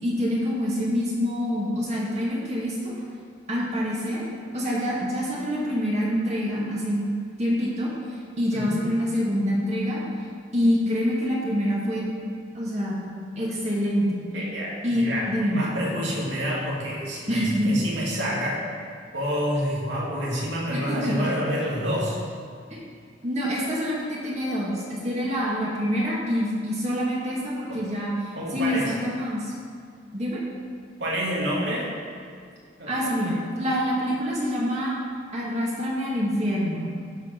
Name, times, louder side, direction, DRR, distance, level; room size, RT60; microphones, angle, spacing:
voice 1, 0.0-3.0 3.5-4.3 4.5-7.1 7.4-10.0 10.5-12.0 12.5-13.0 13.4-14.2 14.8-15.6 17.3-17.8 20.7-21.2 23.2-29.5 30.1-30.4 32.9-35.0 35.3-36.8, equal, 35° right, -5 dB, 1.9 m, -26 dB
voice 2, 14.3-18.6 19.1-22.2 27.7-27.8 28.3-28.9 31.0-31.9 32.8-32.9, equal, 75° right, -5 dB, 2.6 m, -28 dB
13.0 x 5.5 x 5.7 m, 2.2 s
head